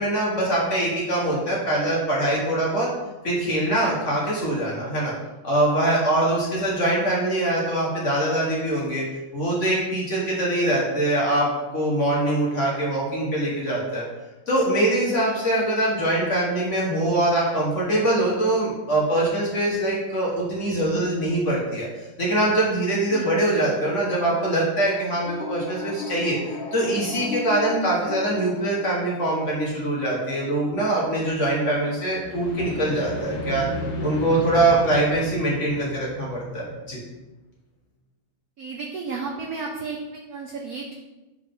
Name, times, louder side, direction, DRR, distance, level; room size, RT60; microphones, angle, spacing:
voice 1, 0.0-2.9 3.2-5.1 5.4-9.0 9.3-14.0 14.5-21.9 22.2-26.4 26.7-33.7 34.0-37.0, right 1 dB, 40° left, -4 dB, 1.6 m, -23 dB
sound 1, 25.1-29.4 32.0-37.0, left 1 dB, 75° left, 1.9 m, -34 dB
voice 2, 38.6-40.9, right 4 dB, 70° right, 1 dB, 0.9 m, -33 dB
6.7 x 4.8 x 3.6 m, 1.1 s
omnidirectional pair, 2.3 m